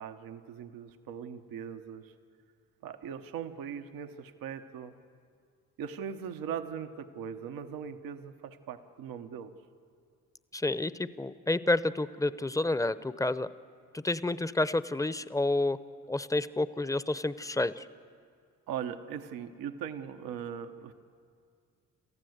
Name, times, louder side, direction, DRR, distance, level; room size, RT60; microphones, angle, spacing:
voice 1, 0.0-2.1 2.8-4.9 5.8-9.5 18.7-20.9, right 8 dB, 85° right, 8 dB, 1.0 m, -40 dB
voice 2, 10.5-13.5 13.9-15.8 16.1-17.9, left 2 dB, 10° left, 15 dB, 0.7 m, -29 dB
27.5 x 14.5 x 8.0 m, 2.2 s
supercardioid pair, 55°, 34 cm